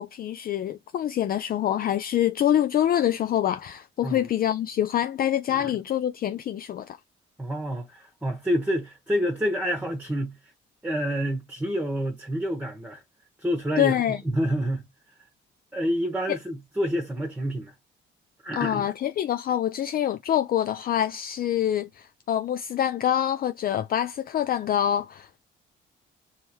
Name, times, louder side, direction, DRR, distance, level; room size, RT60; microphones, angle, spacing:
voice 1, 0.0-7.0 13.8-14.2 18.6-25.4, left 11 dB, 50° left, 0.4 m, -25 dB
voice 2, 7.4-10.5 10.8-13.0 13.4-14.8 15.7-17.7 18.4-18.9, equal, 10° right, 1.2 m, -28 dB
5.4 x 3.1 x 3.0 m
cardioid pair, 90°, 20 cm